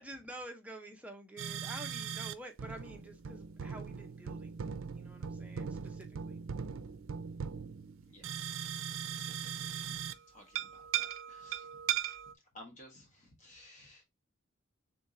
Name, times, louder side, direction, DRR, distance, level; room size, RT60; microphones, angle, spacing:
voice 1, 0.0-6.4, right 1 dB, 5° right, 0.7 m, -49 dB
sound 1, 1.4-2.3 2.6-10.2 10.5-12.3, right 8 dB, 75° right, 0.4 m, -39 dB
voice 2, 8.1-12.0 12.5-14.0, left 1 dB, 35° left, 1.5 m, -57 dB
3.6 x 3.4 x 3.9 m
head